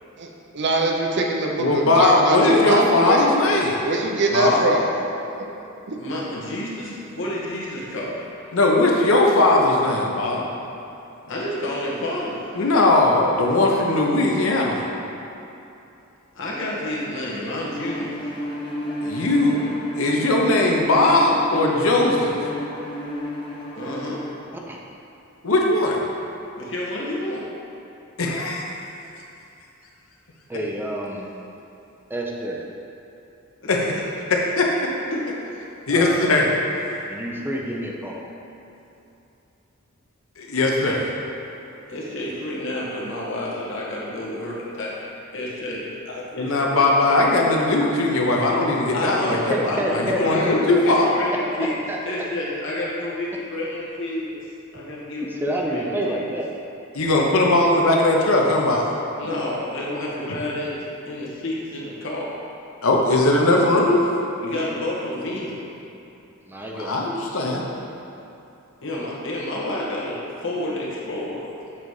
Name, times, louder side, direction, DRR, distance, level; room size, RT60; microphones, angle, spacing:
voice 1, 0.2-3.3 3.8-5.0 5.4-6.0, right 2 dB, 55° right, 1 dB, 0.7 m, -23 dB
voice 2, 1.6-3.8 4.3-4.6 8.5-10.5 12.5-14.8 19.0-19.7 20.0-22.4 25.4-26.0 28.2-28.6 33.7-34.0 34.6-34.7 35.9-36.5 40.4-41.1 46.4-51.1 56.9-58.9 62.8-64.0 66.7-67.6, left 2 dB, 80° left, -1 dB, 0.9 m, -19 dB
voice 3, 6.0-8.3 11.3-12.5 16.3-18.3 23.7-24.2 26.6-27.4 33.6-33.7 35.1-35.2 35.5-35.6 41.9-46.9 48.9-54.3 54.7-56.2 59.2-62.3 64.4-65.6 68.8-71.5, left 1 dB, 65° left, -5 dB, 1.4 m, -30 dB
Bowed string instrument, 17.7-24.3, equal, 25° left, 1.0 m, -31 dB
voice 4, 30.5-31.3 32.1-32.6 35.9-36.4 37.0-38.3 49.5-50.8 51.9-52.0 55.2-56.5 66.4-67.1, right 1 dB, 10° right, -1 dB, 0.5 m, -28 dB
7.3 x 4.0 x 4.8 m, 2.9 s
head